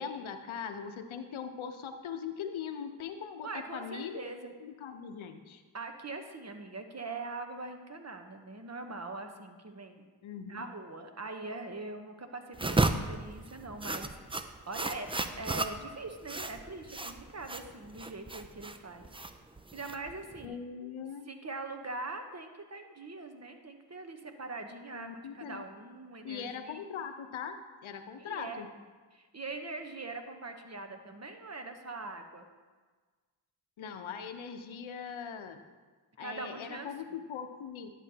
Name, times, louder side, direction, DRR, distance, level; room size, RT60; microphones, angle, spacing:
voice 1, 0.0-4.2 4.6-5.6 10.2-10.7 20.4-21.3 24.9-25.6 26.2-28.7 33.8-35.6 36.2-37.9, left 7 dB, 70° left, 7 dB, 0.9 m, -40 dB
voice 2, 3.4-4.5 5.7-10.1 10.5-19.1 19.7-20.6 21.3-26.8 28.2-28.6 29.1-32.5 36.2-36.9, right 3 dB, 30° right, 6 dB, 1.0 m, -42 dB
sound 1, 12.5-20.5, right 2 dB, 10° right, 0.4 m, -34 dB
11.0 x 7.1 x 2.9 m, 1.4 s
cardioid pair, 45°, 50 cm